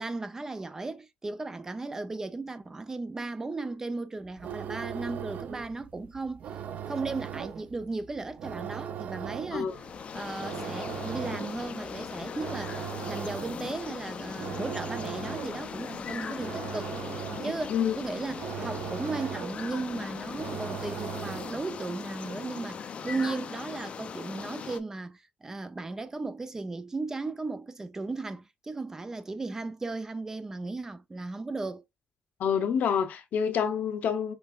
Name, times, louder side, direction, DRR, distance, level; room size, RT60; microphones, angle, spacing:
voice 1, 0.0-6.5 6.9-9.8 10.1-17.0 17.4-31.8, right 3 dB, 20° right, 0.4 m, -36 dB
sound 1, 4.3-21.7, right 9 dB, 70° right, 0.5 m, -39 dB
sound 2, 9.7-24.8, left 6 dB, 45° left, 0.4 m, -39 dB
voice 2, 32.4-34.3, left 7 dB, 75° left, 0.7 m, -27 dB
5.4 x 3.3 x 2.3 m
wide cardioid pair, 175°, 3 cm